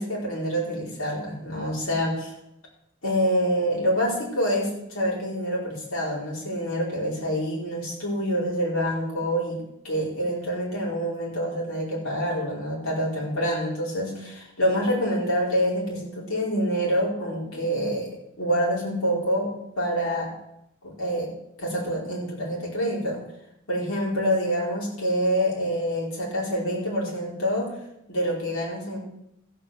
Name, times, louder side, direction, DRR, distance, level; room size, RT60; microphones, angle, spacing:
voice 1, 0.0-2.3 3.0-18.1 18.4-19.5 19.8-20.3 20.8-21.3 21.6-23.2 23.7-27.7 28.1-29.0, equal, 90° left, -4 dB, 4.9 m, -26 dB
14.0 x 5.4 x 7.7 m, 0.82 s
head